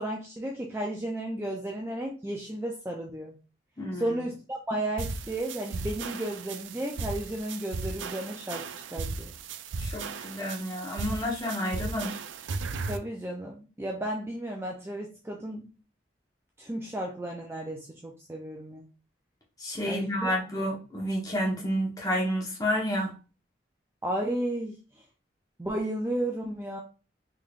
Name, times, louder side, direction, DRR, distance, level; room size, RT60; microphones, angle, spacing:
voice 1, 0.0-3.3 3.9-8.6 8.9-9.3 12.9-15.7 16.6-18.9 19.9-20.3 24.0-24.8 25.6-26.8, right 1 dB, 15° right, 0 dB, 0.4 m, -33 dB
voice 2, 3.8-4.2 9.8-12.2 19.6-23.1, equal, 20° left, -2 dB, 1.0 m, -30 dB
sound 1, 5.0-13.0, right 4 dB, 90° right, 0.4 m, -36 dB
3.7 x 3.3 x 2.4 m, 0.33 s
head